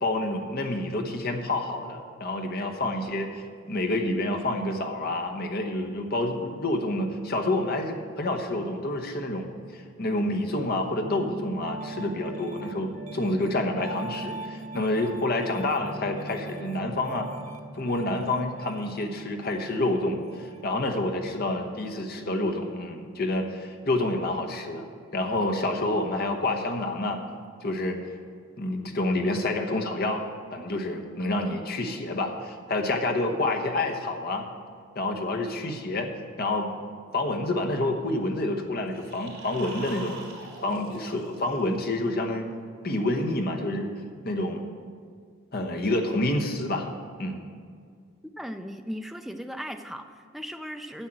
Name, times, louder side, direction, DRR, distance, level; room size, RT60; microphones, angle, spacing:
voice 1, 0.0-9.5 9.7-17.3 17.7-27.2 27.6-28.0 28.6-30.2 30.5-34.4 34.9-36.1 36.4-36.7 37.1-40.2 40.6-42.5 42.8-43.9 44.2-44.6 45.5-46.9 47.2-47.4, left 2 dB, 45° left, 3 dB, 1.0 m, -28 dB
Piano, 11.0-20.7, right 1 dB, 35° right, 0.7 m, -40 dB
sound 1, 38.8-42.0, right 2 dB, 65° right, 3.6 m, -43 dB
voice 2, 48.4-51.1, equal, ahead, 6 dB, 0.4 m, -37 dB
10.0 x 7.4 x 7.6 m, 2.1 s
head